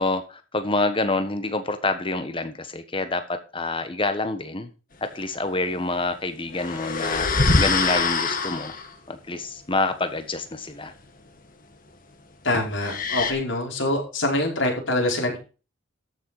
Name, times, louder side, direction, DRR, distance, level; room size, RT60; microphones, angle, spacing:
voice 1, 0.0-4.7 5.1-7.3 7.6-8.7 9.1-10.9, left 2 dB, 25° left, 1.4 m, -27 dB
sound 1, 6.5-8.9 12.8-13.3, left 3 dB, 45° left, 1.9 m, -23 dB
voice 2, 12.4-15.4, left 1 dB, 70° left, 4.9 m, -25 dB
13.5 x 6.6 x 4.9 m
head